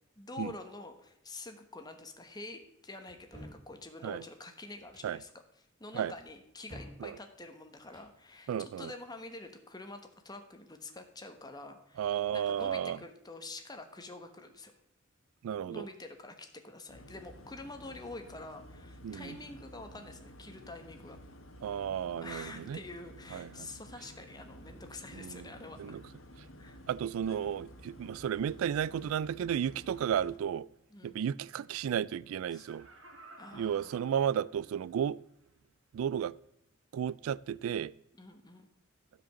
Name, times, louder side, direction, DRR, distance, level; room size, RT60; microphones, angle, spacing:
voice 1, 0.2-5.3 5.6-14.7 15.6-21.2 21.6-21.9 22.2-26.1 26.6-26.8 30.9-31.2 32.5-32.7 33.4-33.9 38.2-38.7, left 2 dB, 20° left, 1.2 m, -47 dB
sound 1, 3.1-3.6 4.8-5.1 6.2-7.0 7.8-8.1, equal, 20° right, 5.2 m, -50 dB
voice 2, 8.5-8.9 12.0-13.0 15.4-15.9 19.0-19.4 21.6-22.8 23.3-23.7 25.1-25.5 25.8-26.0 26.9-30.7 31.0-32.9 33.5-35.2 35.9-36.3 36.9-37.9, right 9 dB, 85° right, 0.3 m, -33 dB
sound 2, 16.9-30.4, equal, 75° left, 1.3 m, -52 dB
Laughter, 32.3-34.9 35.4-35.5, right 2 dB, 60° right, 2.0 m, -56 dB
12.5 x 5.1 x 7.2 m
head